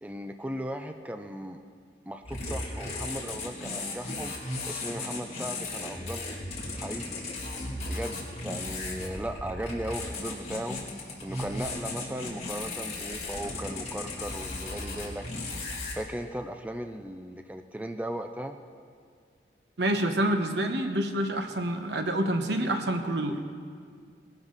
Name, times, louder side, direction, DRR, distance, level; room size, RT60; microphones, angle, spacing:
voice 1, 0.0-1.6 2.1-6.4 6.7-7.2 7.9-10.8 11.2-15.3 15.9-18.6, right 1 dB, 10° right, 6 dB, 0.4 m, -37 dB
sound 1, 2.2-15.9, left 2 dB, 35° left, 2.5 m, -36 dB
voice 2, 19.8-23.4, right 1 dB, 70° right, 6 dB, 1.1 m, -27 dB
19.5 x 11.5 x 4.0 m, 2.2 s
head